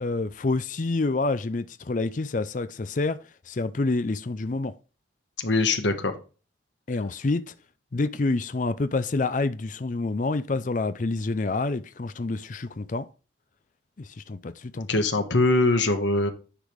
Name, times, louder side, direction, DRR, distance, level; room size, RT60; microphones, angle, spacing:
voice 1, 0.0-3.2 3.5-4.7 6.9-7.5 7.9-13.1 14.0-14.9, left 3 dB, 40° left, 0.5 m, -27 dB
voice 2, 5.4-6.1 14.8-16.3, left 2 dB, 75° left, 1.3 m, -22 dB
10.0 x 5.0 x 3.5 m
head